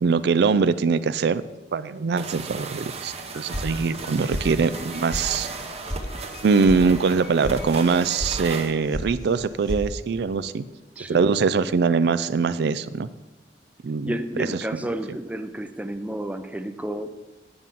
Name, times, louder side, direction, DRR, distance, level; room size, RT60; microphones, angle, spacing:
voice 1, 0.0-1.4 1.7-5.5 6.4-10.6 11.1-13.1 13.8-14.1 14.5-14.6, right 5 dB, 65° right, 14 dB, 0.4 m, -22 dB
sound 1, 2.2-8.7, right 4 dB, 35° right, 0.9 m, -36 dB
Piano, 3.2-9.7, left 3 dB, 55° left, 1.2 m, -46 dB
sound 2, 3.5-4.0 4.3-4.8 5.1-5.2 5.6-6.0 6.3-6.8 7.1-7.5 7.9-8.3 8.6-9.1 9.3-9.8, equal, 25° left, 1.0 m, -31 dB
voice 2, 11.0-11.8 14.0-17.1, right 1 dB, 10° right, 8 dB, 0.5 m, -31 dB
9.6 x 5.3 x 7.4 m, 1.1 s
head